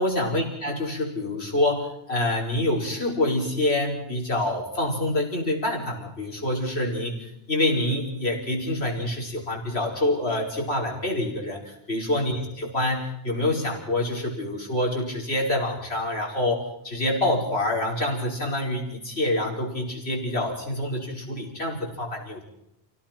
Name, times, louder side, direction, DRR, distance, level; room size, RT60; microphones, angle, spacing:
voice 1, 0.0-22.4, left 1 dB, 70° left, -1 dB, 5.5 m, -26 dB
29.5 x 17.5 x 6.0 m, 0.83 s
omnidirectional pair, 1.1 m